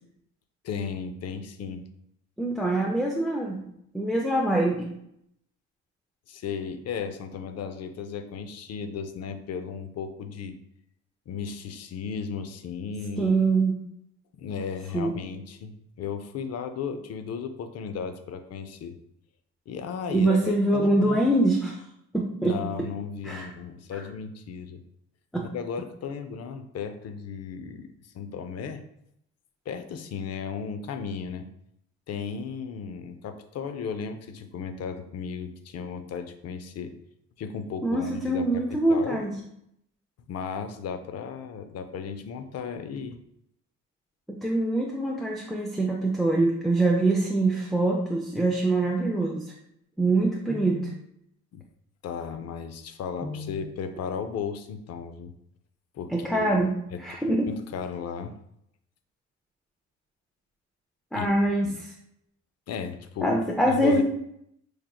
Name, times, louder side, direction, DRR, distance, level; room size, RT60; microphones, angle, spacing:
voice 1, 0.6-1.8 6.3-10.6 11.3-13.3 14.3-19.0 19.7-21.2 22.4-24.8 25.5-28.8 29.7-31.5 32.1-36.9 37.4-39.2 40.3-43.2 51.5-51.6 52.0-55.3 55.9-57.0 57.5-58.3 61.1-61.3 61.6-61.8 62.7-63.4 63.7-64.0, left 6 dB, 55° left, 9 dB, 0.5 m, -35 dB
voice 2, 2.4-3.6 3.9-4.9 13.2-13.8 14.9-15.1 20.1-21.8 22.1-22.6 23.2-23.5 23.9-24.0 25.3-25.5 37.8-39.4 44.3-49.5 50.0-50.9 53.2-53.6 56.1-57.5 61.1-61.9 63.2-64.0, right 2 dB, ahead, -1 dB, 0.4 m, -24 dB
4.7 x 2.8 x 2.2 m, 0.76 s
cardioid pair, 90°, 30 cm